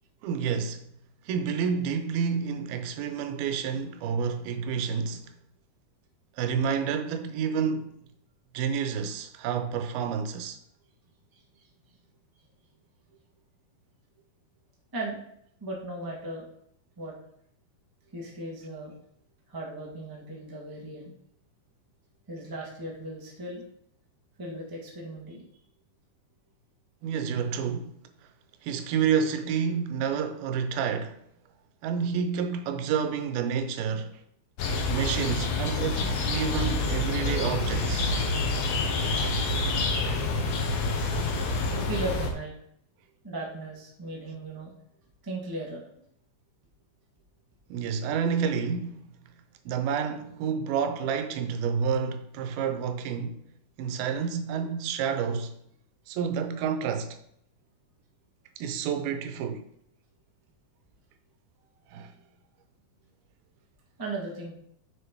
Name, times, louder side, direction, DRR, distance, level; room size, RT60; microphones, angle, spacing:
voice 1, 0.2-0.8 1.3-5.3 6.4-8.0 8.5-10.6 27.0-27.9 28.6-31.2 31.8-34.2 34.9-38.1 47.7-49.1 49.7-53.4 53.8-55.6 56.1-57.2 58.6-59.7 61.9-62.1, right 6 dB, 90° right, 2.7 m, -29 dB
voice 2, 11.3-11.7 14.9-15.2 15.6-16.4 17.0-17.1 18.1-18.9 19.5-21.1 22.3-23.6 24.4-25.4 41.9-42.5 43.2-44.7 45.2-45.8 64.0-64.5, right 2 dB, 10° right, 1.0 m, -37 dB
sound 1, 34.6-42.3, left 3 dB, 65° left, 1.9 m, -27 dB
6.7 x 6.4 x 4.6 m
omnidirectional pair, 4.3 m